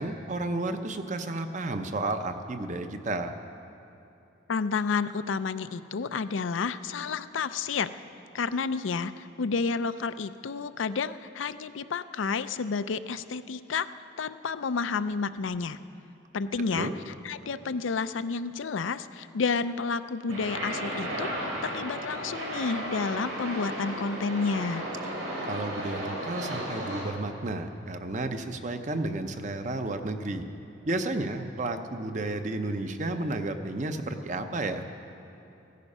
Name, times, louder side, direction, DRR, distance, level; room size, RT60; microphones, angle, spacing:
voice 1, 0.0-3.3 16.7-17.0 25.2-30.4 30.8-34.8, right 2 dB, 40° right, 7 dB, 0.7 m, -32 dB
voice 2, 4.5-7.9 8.3-13.9 14.2-15.8 16.3-24.9, left 5 dB, 85° left, 13 dB, 0.5 m, -30 dB
sound 1, 20.3-27.0, right 1 dB, 70° right, 3.6 m, -34 dB
16.0 x 13.5 x 5.5 m, 3.0 s
head